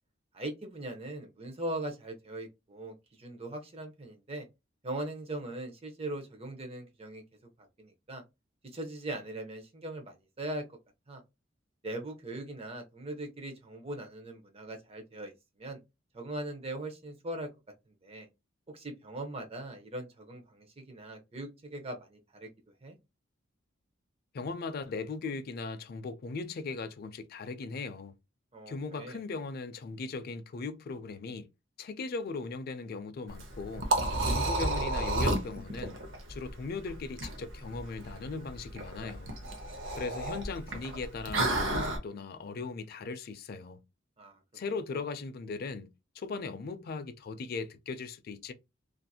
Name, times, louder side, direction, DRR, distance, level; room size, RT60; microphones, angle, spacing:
voice 1, 0.3-4.5 4.8-7.2 7.6-8.2 8.7-10.8 11.1-11.2 11.8-15.8 16.1-17.5 17.9-18.3 18.7-22.5 22.8-23.0 28.5-29.2 44.2-44.4, right 1 dB, 30° right, 0.6 m, -40 dB
voice 2, 24.3-28.1 28.7-31.5 31.8-33.9 34.3-36.0 36.3-39.3 39.9-43.8 44.5-48.5, left 4 dB, 50° left, 0.4 m, -38 dB
Liquid, 33.3-42.0, right 2 dB, 70° right, 0.7 m, -32 dB
2.7 x 2.5 x 2.2 m
head